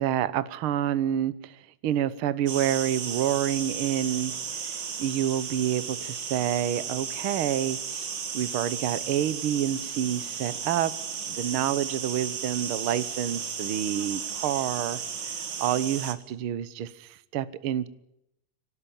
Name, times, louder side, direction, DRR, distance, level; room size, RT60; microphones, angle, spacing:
voice 1, 0.0-4.3 4.7-8.1 8.3-10.9 11.3-17.9, right 11 dB, 65° right, 14 dB, 1.4 m, -28 dB
sound 1, 2.5-16.1, right 6 dB, 45° right, 2.3 m, -34 dB
26.0 x 18.5 x 9.0 m, 0.83 s
omnidirectional pair, 3.7 m